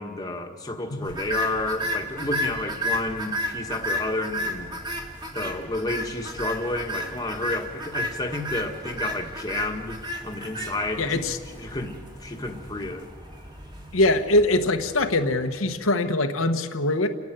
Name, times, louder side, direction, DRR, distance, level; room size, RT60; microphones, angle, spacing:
voice 1, 0.0-4.7 5.3-13.1, left 2 dB, 20° left, 2 dB, 1.6 m, -31 dB
sound 1, 1.1-15.4, equal, 20° right, 2.2 m, -33 dB
voice 2, 11.0-11.4 13.9-17.1, left 2 dB, 75° left, 5 dB, 1.2 m, -23 dB
29.5 x 10.5 x 9.1 m, 2.2 s
head